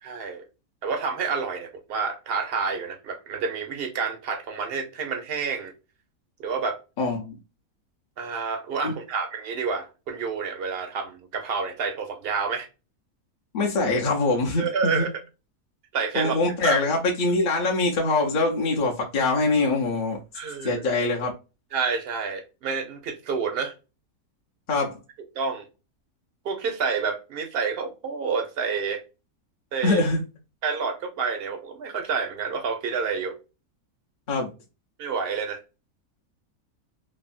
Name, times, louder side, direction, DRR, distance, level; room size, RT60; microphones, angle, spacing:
voice 1, 0.0-0.4 0.8-5.7 6.4-6.8 8.2-12.7 14.6-15.1 15.9-16.4 16.6-16.8 20.3-20.8 21.7-23.7 25.3-25.7 26.4-29.0 29.7-30.0 30.6-33.3 35.0-35.6, right 5 dB, 60° right, 0.6 m, -29 dB
voice 2, 7.0-7.4 8.8-8.9 13.5-15.1 16.2-20.2 20.6-21.3 24.7-25.0 29.8-30.2 34.3-34.5, left 2 dB, 55° left, 0.5 m, -23 dB
3.4 x 2.1 x 2.4 m
omnidirectional pair, 1.6 m